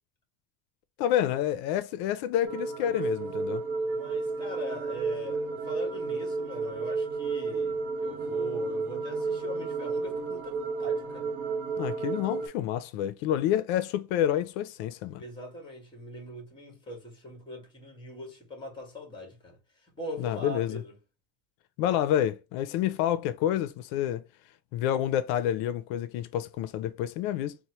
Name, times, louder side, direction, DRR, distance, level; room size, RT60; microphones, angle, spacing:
voice 1, 1.0-3.6 11.8-15.2 20.2-20.8 21.8-24.2 24.7-27.6, left 11 dB, 85° left, 0.5 m, -28 dB
sound 1, 2.4-12.5, right 4 dB, 30° right, 0.6 m, -32 dB
voice 2, 3.8-11.3 15.2-20.9, equal, 15° left, 1.6 m, -41 dB
4.2 x 2.1 x 2.9 m
cardioid pair, 155°, 37 cm